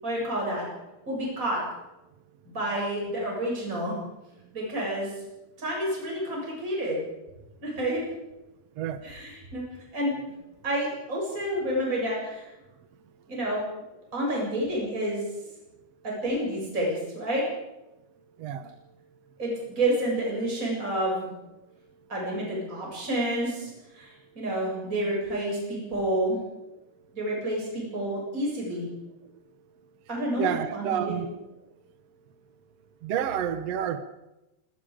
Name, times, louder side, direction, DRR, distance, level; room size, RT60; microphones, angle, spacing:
voice 1, 0.0-0.6 1.1-1.6 2.4-4.0 4.5-5.1 5.6-7.0 7.6-8.0 9.0-9.6 9.9-10.1 10.6-12.5 13.3-13.6 14.1-15.2 16.0-17.4 19.4-21.3 22.1-26.4 27.1-28.9 30.1-31.2, right 1 dB, 20° right, -3 dB, 7.9 m, -29 dB
voice 2, 18.4-18.7 30.4-31.4 33.0-34.0, right 9 dB, 80° right, 10 dB, 1.4 m, -29 dB
27.0 x 20.0 x 5.2 m, 0.95 s
omnidirectional pair, 4.6 m